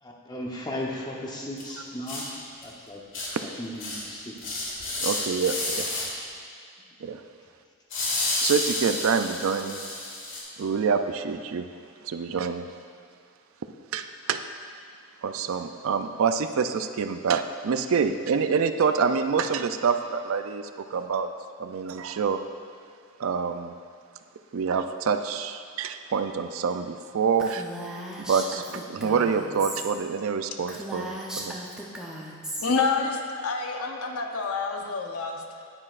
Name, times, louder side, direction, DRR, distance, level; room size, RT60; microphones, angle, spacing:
voice 1, 0.0-2.3 2.6-3.0 3.3-4.6, left 1 dB, 20° left, -2 dB, 1.0 m, -36 dB
sound 1, 1.6-1.7 2.1-2.2 2.6-2.7 3.1-3.3 3.8-4.1 4.4-6.1 7.9-10.4, left 2 dB, 60° left, 1.8 m, -30 dB
voice 2, 5.0-5.9 7.0-7.2 8.4-9.8 10.6-11.7 12.0-12.7 13.9-14.4 15.2-21.3 21.6-22.4 23.2-23.8 24.5-27.6 28.2-31.6, right 6 dB, 70° right, 9 dB, 0.4 m, -26 dB
Female speech woman speaking, 27.4-29.9 30.2-30.3 30.7-32.7, right 1 dB, 5° right, 0.7 m, -37 dB
voice 3, 32.6-35.6, left 4 dB, 80° left, 2 dB, 0.8 m, -28 dB
9.8 x 9.7 x 2.5 m, 2.2 s
head